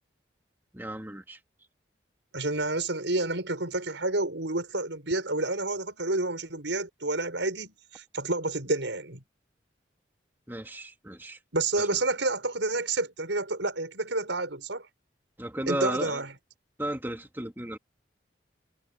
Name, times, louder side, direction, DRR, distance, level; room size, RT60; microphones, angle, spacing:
voice 1, 0.7-1.4 10.5-11.4 11.8-11.9 15.4-16.2 16.8-17.8, right 1 dB, 10° right, 2.1 m, -34 dB
voice 2, 2.3-9.2 11.5-14.9 15.7-16.3, right 2 dB, 80° right, 5.5 m, -29 dB
head